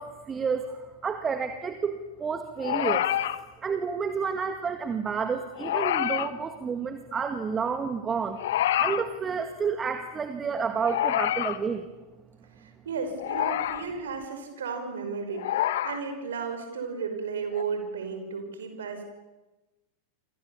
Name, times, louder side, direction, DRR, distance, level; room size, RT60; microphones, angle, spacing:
voice 1, 0.0-3.1 3.4-8.4 8.8-11.9, right 5 dB, 20° right, 8 dB, 1.9 m, -30 dB
sound 1, 2.6-3.4 5.6-6.3 8.4-9.0 10.8-11.6 13.2-13.8 15.3-16.0 17.6-17.7, left 12 dB, 55° left, 1.3 m, -27 dB
voice 2, 12.6-19.0, right 5 dB, 65° right, 7 dB, 5.4 m, -34 dB
29.5 x 25.5 x 7.1 m, 1.1 s
figure-of-eight pair, 90°, 0 cm